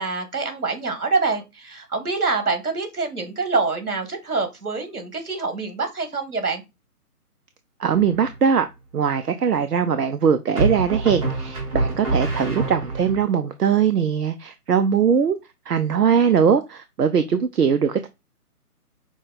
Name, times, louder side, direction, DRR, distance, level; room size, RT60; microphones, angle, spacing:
voice 1, 0.0-6.6, right 4 dB, 65° right, 1.8 m, -25 dB
voice 2, 7.8-8.7 8.9-15.4 15.7-18.1, right 7 dB, 85° right, 0.6 m, -20 dB
sound 1, 7.9-8.5 10.6-13.2, right 2 dB, 20° right, 1.2 m, -26 dB
6.0 x 2.3 x 3.9 m
figure-of-eight pair, 145°, 46 cm